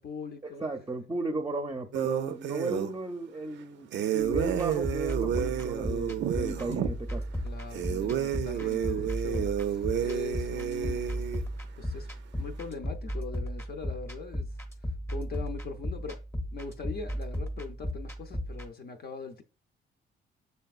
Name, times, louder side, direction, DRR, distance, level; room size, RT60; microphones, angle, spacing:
voice 1, 0.0-0.6 7.4-11.1 11.8-12.1 12.3-16.2 16.5-19.4, left 5 dB, 50° left, 0.6 m, -41 dB
voice 2, 0.6-7.2, right 2 dB, 15° right, 0.5 m, -35 dB
sound 1, 1.9-2.9 3.9-6.9 7.7-11.4, right 9 dB, 65° right, 0.5 m, -30 dB
sound 2, 4.2-18.7, equal, 10° left, 0.8 m, -35 dB
6.7 x 3.3 x 2.4 m
cardioid pair, 90°, 20 cm